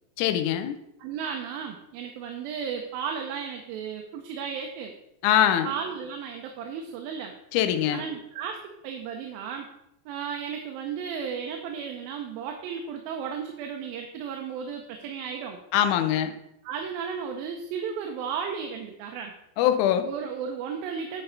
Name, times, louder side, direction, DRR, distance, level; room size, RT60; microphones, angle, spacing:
voice 1, 0.2-0.8 5.2-5.7 7.5-8.0 15.7-16.3 19.6-20.1, left 10 dB, 80° left, 9 dB, 1.8 m, -22 dB
voice 2, 1.0-4.9 5.6-7.3 7.9-9.7 10.1-15.6 16.6-19.3 20.0-21.2, right 7 dB, 85° right, 3 dB, 2.5 m, -34 dB
9.0 x 5.4 x 3.9 m, 0.81 s
omnidirectional pair, 4.1 m